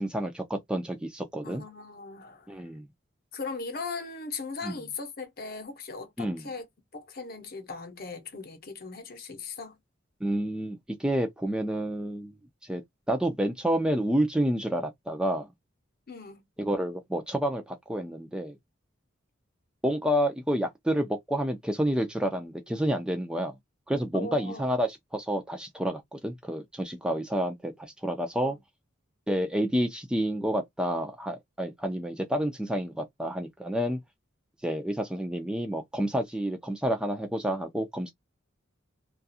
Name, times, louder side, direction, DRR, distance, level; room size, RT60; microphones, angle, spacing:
voice 1, 0.0-1.6 2.5-2.9 4.6-4.8 6.2-6.4 10.2-12.3 12.6-12.8 13.1-15.5 16.6-18.6 19.8-23.5 23.9-28.6 29.3-34.0 34.6-38.1, equal, 5° right, 0.3 m, -29 dB
voice 2, 1.4-2.5 3.3-6.7 6.9-9.8 16.1-16.4 24.1-24.8 28.4-28.5, left 4 dB, 50° left, 0.8 m, -39 dB
2.5 x 2.3 x 2.6 m
head